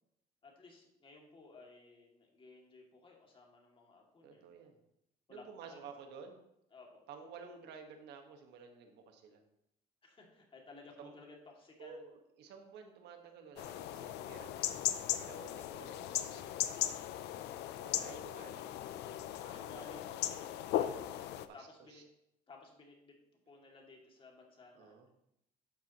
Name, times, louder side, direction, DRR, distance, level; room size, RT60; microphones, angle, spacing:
voice 1, 0.4-4.4 5.3-5.9 6.7-7.0 10.0-12.0 19.5-21.1 21.5-22.0 22.5-23.1 23.5-25.0, left 3 dB, 30° left, -1 dB, 2.5 m, -56 dB
voice 2, 4.2-4.8 5.3-6.4 7.1-9.4 11.0-11.1 11.8-14.8 15.2-16.6 17.8-18.7 19.2-19.7 21.0-22.0 24.7-25.1, right 5 dB, 85° right, 4 dB, 1.6 m, -53 dB
sound 1, 13.6-21.5, left 12 dB, 85° left, 0.6 m, -38 dB
11.5 x 7.6 x 3.1 m, 0.81 s
cardioid pair, 110°, 17 cm